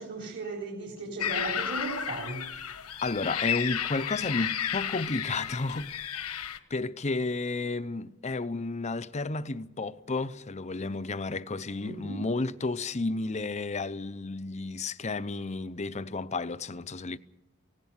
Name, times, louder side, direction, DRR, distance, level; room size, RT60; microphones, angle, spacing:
voice 1, 0.0-2.4 11.8-12.2, right 3 dB, 50° right, 3.4 m, -36 dB
sound 1, 1.2-6.6, left 9 dB, 85° left, 1.3 m, -33 dB
voice 2, 3.0-6.0 6.7-17.2, left 3 dB, 30° left, 0.7 m, -32 dB
18.5 x 17.0 x 9.6 m
head